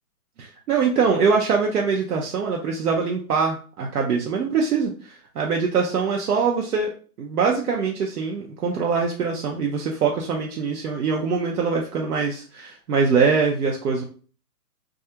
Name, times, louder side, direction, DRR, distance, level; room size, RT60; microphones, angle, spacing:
voice 1, 0.4-6.9 7.2-14.0, right 5 dB, 70° right, 0 dB, 0.7 m, -23 dB
2.3 x 2.3 x 2.8 m, 0.40 s
hypercardioid pair, 160°, 46 cm